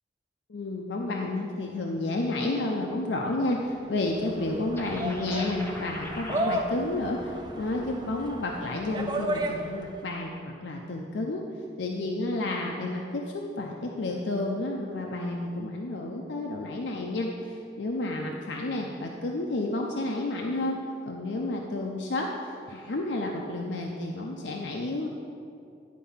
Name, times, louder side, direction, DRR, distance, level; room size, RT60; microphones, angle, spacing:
voice 1, 0.5-11.4 11.8-20.8 21.1-22.3 22.7-25.1, left 2 dB, 90° left, 0 dB, 0.6 m, -31 dB
sound 1, 3.7-10.0, right 1 dB, 25° right, 0.6 m, -34 dB
sound 2, 4.7-6.4, left 1 dB, 15° left, 0.8 m, -41 dB
10.5 x 4.6 x 5.6 m, 2.5 s
head